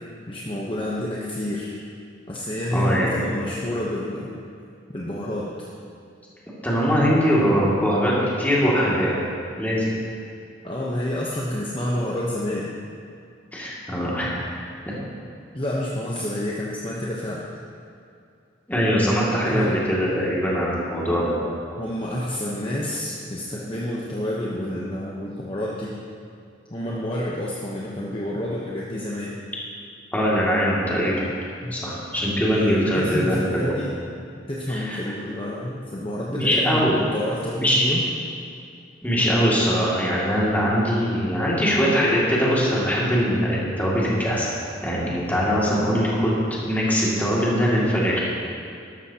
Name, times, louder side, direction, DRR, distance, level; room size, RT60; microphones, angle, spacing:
voice 1, 0.3-1.7 2.3-4.3 4.9-5.5 10.6-12.7 15.5-17.4 19.4-19.7 21.8-25.9 26.7-29.4 31.6-31.7 32.4-33.9 34.5-38.0, left 1 dB, 30° left, -5 dB, 1.0 m, -28 dB
voice 2, 2.7-3.1 6.6-9.2 9.6-9.9 13.5-14.4 14.9-15.0 18.7-21.4 30.1-31.2 31.7-33.7 34.7-35.0 36.3-36.9 37.6-37.9 39.0-44.6 44.8-48.2, equal, 10° left, -7 dB, 2.4 m, -22 dB
13.0 x 12.5 x 2.9 m, 2.4 s
head